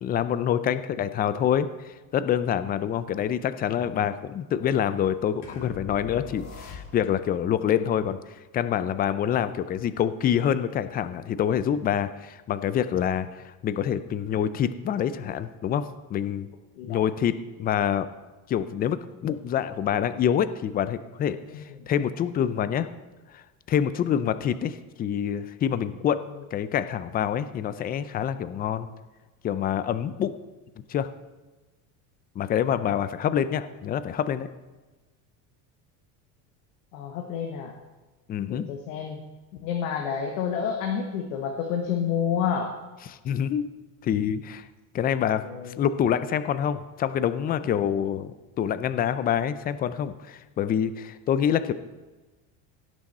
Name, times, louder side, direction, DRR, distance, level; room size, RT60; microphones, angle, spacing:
voice 1, 0.0-8.2 8.5-16.5 16.9-17.3 17.6-18.1 18.5-22.9 23.3-23.4 23.7-26.2 26.5-28.9 29.4-30.3 30.9-31.1 32.4-34.5 38.3-38.7 43.0-43.7 44.0-44.7 44.9-51.7, left 9 dB, 25° left, 13 dB, 0.4 m, -26 dB
sound 1, 5.4-7.3, left 5 dB, 40° left, 2.0 m, -41 dB
voice 2, 36.9-37.7 38.5-39.2 39.6-42.7 45.4-45.8, left 7 dB, 85° left, 2 dB, 1.4 m, -29 dB
16.5 x 6.3 x 4.2 m, 1.2 s
supercardioid pair, 130°, 41 cm